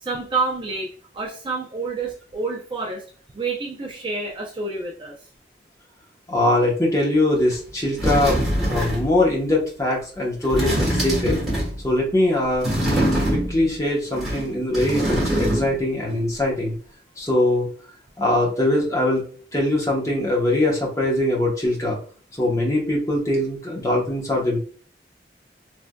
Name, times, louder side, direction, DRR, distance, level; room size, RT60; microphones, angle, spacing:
voice 1, 0.0-3.0 3.3-5.2, right 3 dB, 30° right, 0 dB, 0.4 m, -28 dB
voice 2, 6.3-11.4 11.8-12.7 13.3-16.7 17.2-17.7 18.2-19.2 19.5-22.0 22.4-24.6, left 1 dB, 20° left, -4 dB, 0.9 m, -22 dB
sound 1, 7.5-7.6 8.0-9.1 10.4-11.8 12.6-13.7 14.1-15.8 16.1-16.2, equal, ahead, 1.2 m, -23 dB
3.2 x 2.6 x 2.2 m, 0.43 s
head